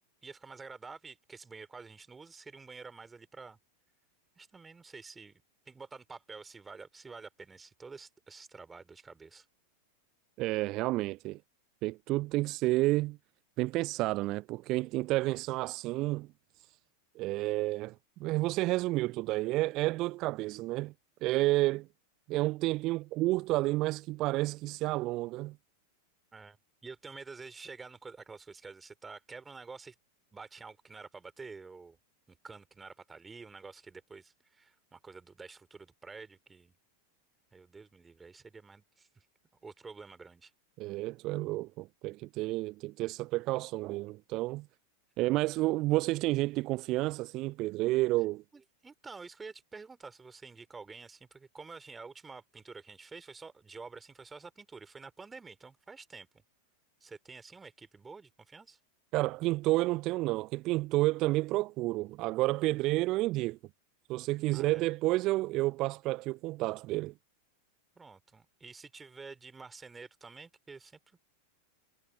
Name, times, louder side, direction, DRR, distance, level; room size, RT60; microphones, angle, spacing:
voice 1, 0.2-3.6 4.4-9.5 26.3-26.6 26.8-30.0 30.3-32.0 32.3-36.7 37.5-39.3 39.6-40.5 45.2-45.3 48.5-56.3 57.0-58.8 64.5-64.9 68.0-71.0, right 4 dB, 15° right, 3.9 m, -49 dB
voice 2, 10.4-11.4 11.8-13.2 13.6-16.3 17.2-17.9 18.2-20.9 21.2-21.9 22.3-25.5 40.8-44.7 45.2-48.4 59.1-63.6 64.1-67.1, right 19 dB, 40° right, 0.3 m, -30 dB
figure-of-eight pair, 90°, 0 cm